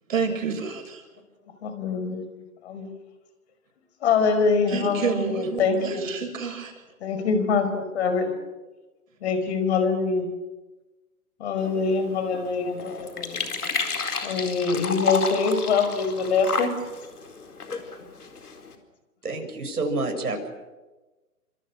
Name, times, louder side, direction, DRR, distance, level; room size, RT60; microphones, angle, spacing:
voice 1, 0.1-1.0 4.7-6.7, right 6 dB, 60° right, 4 dB, 7.3 m, -29 dB
voice 2, 1.6-2.3 2.6-2.9 4.0-6.1 7.0-8.3 9.2-10.3 11.4-13.4 14.2-16.7, left 5 dB, 45° left, 8 dB, 5.1 m, -24 dB
sound 1, 11.6-18.8, left 4 dB, 80° left, 4.4 m, -32 dB
voice 3, 19.2-20.5, right 2 dB, 85° right, 3 dB, 7.0 m, -28 dB
29.5 x 25.5 x 6.4 m, 1.2 s
hypercardioid pair, 135°, 44 cm